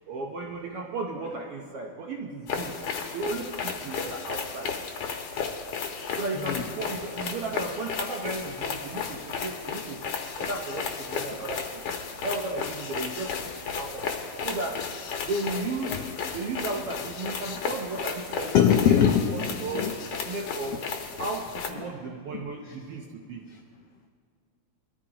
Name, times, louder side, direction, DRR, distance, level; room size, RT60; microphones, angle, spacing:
voice 1, 0.1-2.8 3.1-4.8 6.2-10.0 10.4-11.8 12.2-13.3 13.7-14.1 14.4-14.8 15.2-16.0 16.3-18.5 18.9-19.0 19.3-20.8 21.2-23.4, right 3 dB, 70° right, 1 dB, 1.4 m, -34 dB
sound 1, 2.5-21.7, left 6 dB, 65° left, 1.6 m, -34 dB
voice 2, 18.5-19.4 19.7-19.9 22.3-22.4, left 8 dB, 85° left, 4 dB, 1.4 m, -21 dB
22.0 x 14.0 x 2.9 m, 2.1 s
omnidirectional pair, 3.5 m